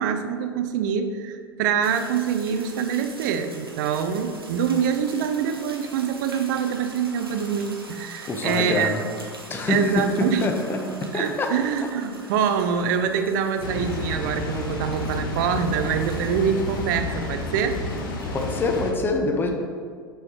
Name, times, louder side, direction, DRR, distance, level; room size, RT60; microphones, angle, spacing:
voice 1, 0.0-8.9 9.7-10.5 11.1-17.8, right 7 dB, 55° right, 8 dB, 0.6 m, -25 dB
sound 1, 1.8-18.8, right 2 dB, 85° right, 0.9 m, -44 dB
voice 2, 8.3-9.0 9.5-11.5 18.3-19.5, left 2 dB, 15° left, 3 dB, 0.7 m, -25 dB
Water, 13.6-18.9, left 2 dB, 65° left, 1.0 m, -30 dB
6.3 x 4.8 x 4.3 m, 2.1 s
figure-of-eight pair, 80°, 12 cm